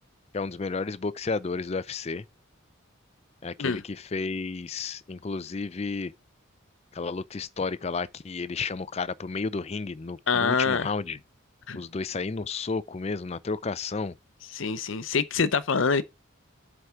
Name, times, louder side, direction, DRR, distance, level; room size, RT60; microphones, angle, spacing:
voice 1, 0.3-2.3 3.4-6.1 6.9-11.2 11.8-14.2, left 4 dB, 30° left, 0.4 m, -32 dB
voice 2, 10.3-10.9 11.7-11.8 14.5-16.0, left 5 dB, 65° left, 0.7 m, -25 dB
8.1 x 4.8 x 5.6 m
head